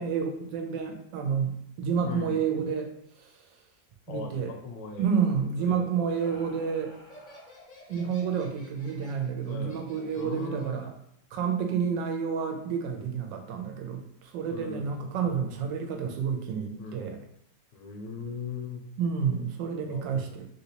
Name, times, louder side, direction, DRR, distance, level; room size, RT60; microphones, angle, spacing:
voice 1, 0.0-2.9 3.2-3.4 4.1-4.5 5.0-6.9 7.9-10.9 11.3-17.2 19.0-20.5, right 6 dB, 85° right, 4 dB, 1.3 m, -29 dB
voice 2, 2.0-2.4 4.1-6.1 9.5-9.8 10.2-10.8 14.5-14.9 16.8-17.0 17.7-18.8 19.9-20.3, left 5 dB, 80° left, 2 dB, 1.2 m, -39 dB
Laughter, 5.6-10.8, left 1 dB, 55° left, 0.5 m, -52 dB
3.3 x 2.8 x 2.8 m, 0.72 s
omnidirectional pair, 2.0 m